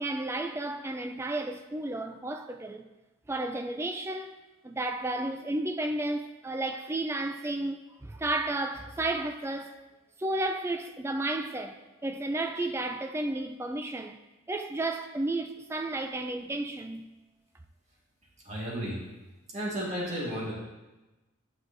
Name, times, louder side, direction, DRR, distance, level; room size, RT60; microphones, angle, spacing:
voice 1, 0.0-2.9 3.3-4.4 4.6-9.8 10.2-11.8 12.0-14.2 14.5-17.1, right 2 dB, 10° right, 0.3 m, -32 dB
voice 2, 18.4-19.0 19.5-20.5, equal, 35° right, 1.7 m, -33 dB
9.6 x 6.1 x 2.6 m
head